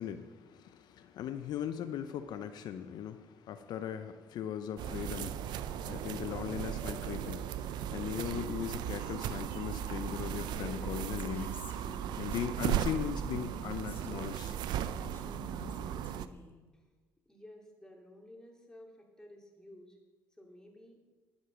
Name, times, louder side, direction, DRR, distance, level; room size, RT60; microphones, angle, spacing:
voice 1, 0.0-11.5 12.1-14.6, left 9 dB, 70° left, 9 dB, 0.6 m, -39 dB
sound 1, 4.8-16.3, right 10 dB, 75° right, 0.5 m, -37 dB
Female speech woman speaking, 10.5-10.8 11.2-12.4 13.3-14.4 14.9-16.6, left 2 dB, 25° left, 1.9 m, -49 dB
voice 2, 17.3-20.0 20.4-21.0, left 1 dB, 10° left, 0 dB, 2.8 m, -54 dB
11.5 x 8.1 x 6.1 m, 1.3 s
supercardioid pair, 80°, 7 cm